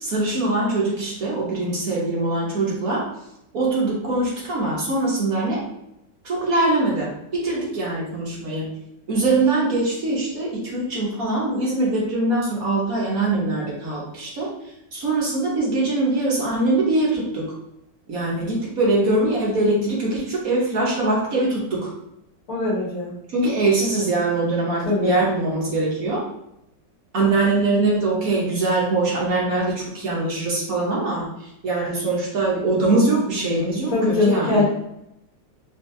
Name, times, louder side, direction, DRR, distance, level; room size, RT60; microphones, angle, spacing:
voice 1, 0.0-3.0 3.5-5.6 6.2-8.7 9.1-14.5 14.9-17.5 18.1-21.9 23.3-26.2 27.1-34.6, right 2 dB, 55° right, -4 dB, 1.4 m, -22 dB
voice 2, 22.5-23.1 24.9-25.2 33.9-34.6, left 2 dB, 55° left, -6 dB, 1.7 m, -21 dB
4.7 x 2.6 x 3.2 m, 0.83 s
omnidirectional pair, 1.9 m